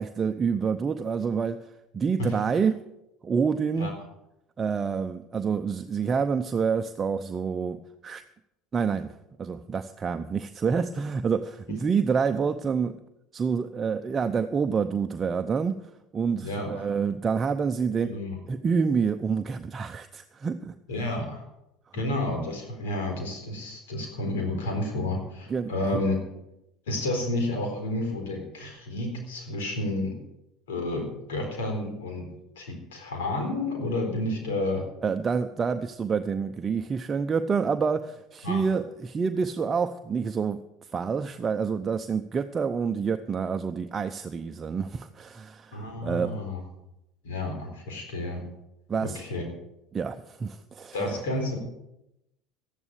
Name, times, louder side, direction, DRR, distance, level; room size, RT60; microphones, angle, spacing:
voice 1, 0.0-1.6 1.9-2.8 3.2-4.0 4.6-8.2 8.7-9.1 9.4-13.0 13.3-15.8 16.1-18.1 18.5-20.8 25.5-25.7 35.0-40.6 40.9-46.4 48.9-49.2 49.9-51.2, right 6 dB, 30° right, 7 dB, 0.7 m, -27 dB
voice 2, 16.4-16.9 18.0-18.4 20.9-21.4 21.9-26.2 26.9-30.2 30.7-32.3 32.6-34.8 38.4-38.6 45.7-46.6 47.2-48.4 49.0-49.4 50.9-51.6, left 2 dB, 85° left, 3 dB, 4.1 m, -30 dB
13.0 x 11.0 x 6.6 m, 0.86 s
hypercardioid pair, 80°, 0 cm